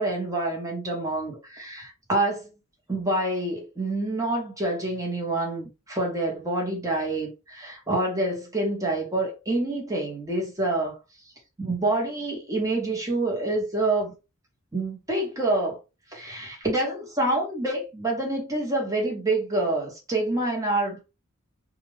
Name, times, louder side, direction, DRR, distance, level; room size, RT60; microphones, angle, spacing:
voice 1, 0.0-2.5 2.9-11.0 11.6-14.1 14.7-15.8 16.1-21.0, right 2 dB, 15° right, 0.9 m, -27 dB
2.4 x 2.2 x 3.2 m
head